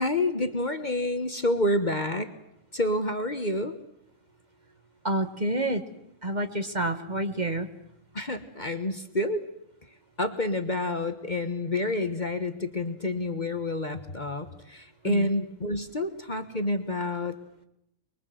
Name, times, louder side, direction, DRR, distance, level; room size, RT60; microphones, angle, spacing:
voice 1, 0.0-2.3 2.7-3.8 8.1-9.5 10.2-17.4, left 1 dB, 35° left, 9 dB, 1.4 m, -28 dB
voice 2, 5.0-5.8 6.2-7.7 15.0-15.3, right 1 dB, 30° right, 7 dB, 1.8 m, -28 dB
24.5 x 23.0 x 7.9 m, 0.80 s
omnidirectional pair, 1.5 m